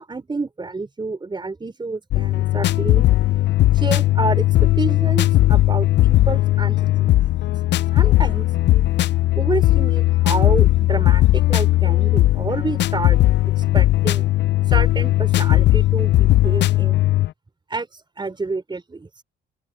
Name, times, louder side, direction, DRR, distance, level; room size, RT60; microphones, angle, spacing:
voice 1, 0.0-3.1 3.7-7.2 7.9-8.9 9.3-13.2 13.6-14.3 14.7-17.0 17.7-19.1, right 3 dB, 25° right, 4.7 m, -29 dB
sound 1, 2.1-17.3, left 15 dB, 65° left, 0.4 m, -17 dB
open air
cardioid pair, 90°, 20 cm